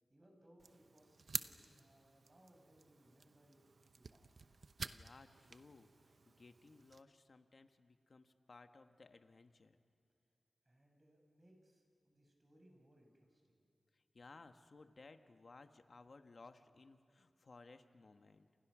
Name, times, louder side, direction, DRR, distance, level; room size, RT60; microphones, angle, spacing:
voice 1, 0.1-3.6 4.0-4.5 10.7-13.7, right 1 dB, 25° right, 2 dB, 5.8 m, -68 dB
sound 1, 0.6-7.0, right 4 dB, 60° right, 0.8 m, -50 dB
voice 2, 4.9-9.8 13.9-18.5, left 3 dB, 55° left, 7 dB, 1.4 m, -60 dB
28.5 x 28.5 x 6.2 m, 2.7 s
wide cardioid pair, 70°, 0 cm